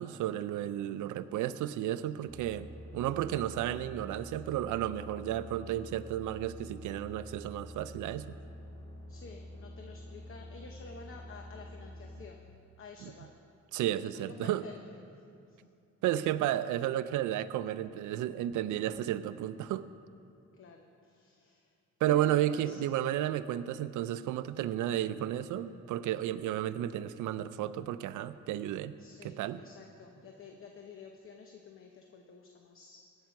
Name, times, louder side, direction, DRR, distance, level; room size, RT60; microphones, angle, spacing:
voice 1, 0.0-8.3 13.0-13.1 13.7-14.6 16.0-19.9 22.0-29.0 29.2-29.6, right 12 dB, 80° right, 14 dB, 0.5 m, -32 dB
sound 1, 2.3-12.3, left 1 dB, 10° left, 2.3 m, -47 dB
voice 2, 9.1-12.4 12.8-13.4 14.3-15.0 15.5-15.6 20.5-21.7 22.0-22.8 29.0-33.1, left 4 dB, 45° left, 3 dB, 0.9 m, -51 dB
17.0 x 5.7 x 5.9 m, 2.5 s
cardioid pair, 90°, 30 cm